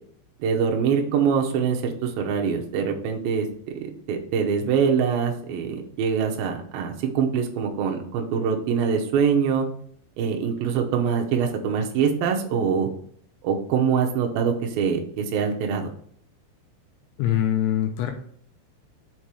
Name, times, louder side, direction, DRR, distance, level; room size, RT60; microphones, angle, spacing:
voice 1, 0.4-3.5 3.8-9.7 10.2-12.9 13.4-15.9, right 6 dB, 80° right, 2 dB, 2.1 m, -24 dB
voice 2, 17.2-18.1, left 11 dB, 85° left, 5 dB, 2.9 m, -23 dB
7.1 x 3.8 x 4.7 m, 0.62 s
omnidirectional pair, 5.4 m